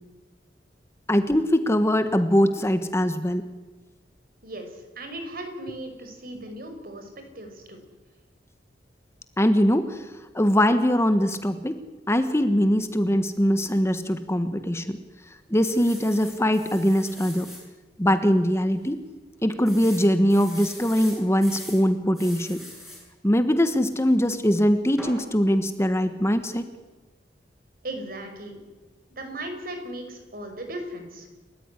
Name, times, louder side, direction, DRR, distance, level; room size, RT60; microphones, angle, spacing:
voice 1, 1.1-3.5 9.4-10.1 10.3-11.8 12.1-15.0 15.5-17.5 18.0-19.0 19.4-22.6 23.2-26.7, equal, 15° left, 9 dB, 1.4 m, -22 dB
voice 2, 4.4-7.1 7.4-7.8 27.8-28.6 29.1-31.3, right 1 dB, 55° right, 6 dB, 5.6 m, -37 dB
sound 1, 15.6-17.6 18.2-18.3 18.6-18.7 19.7-21.8 22.1-23.0 25.0-25.2, left 1 dB, ahead, 7.9 m, -42 dB
30.0 x 14.5 x 9.9 m, 1.2 s
head